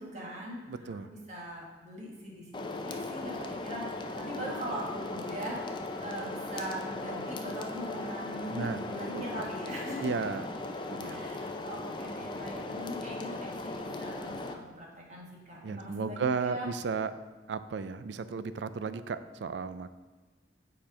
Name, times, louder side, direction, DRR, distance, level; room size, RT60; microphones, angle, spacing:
voice 1, 0.0-10.1 11.0-16.7, equal, 40° right, -3 dB, 1.7 m, -41 dB
voice 2, 0.7-1.1 8.5-8.8 9.1-9.4 10.0-10.5 10.9-11.3 15.6-19.9, right 5 dB, 80° right, 13 dB, 0.4 m, -34 dB
sound 1, 2.5-14.5, left 2 dB, 25° left, 0.5 m, -38 dB
Wind instrument woodwind instrument, 4.3-11.3, equal, 75° left, 1.2 m, -57 dB
7.5 x 4.4 x 4.9 m, 1.3 s
head